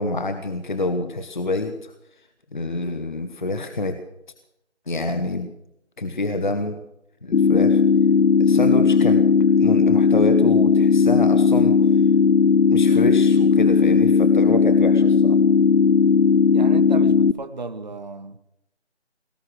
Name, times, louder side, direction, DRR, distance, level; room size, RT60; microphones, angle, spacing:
voice 1, 0.0-1.9 2.5-4.0 4.9-5.5 6.0-6.8 7.2-7.8 8.4-11.8 12.7-15.4, left 2 dB, 45° left, 9 dB, 1.0 m, -27 dB
sound 1, 7.3-17.3, left 5 dB, 85° left, 0.6 m, -16 dB
voice 2, 16.5-18.4, right 3 dB, 40° right, 10 dB, 0.8 m, -34 dB
19.0 x 12.0 x 6.2 m, 0.82 s
figure-of-eight pair, 170°, 35 cm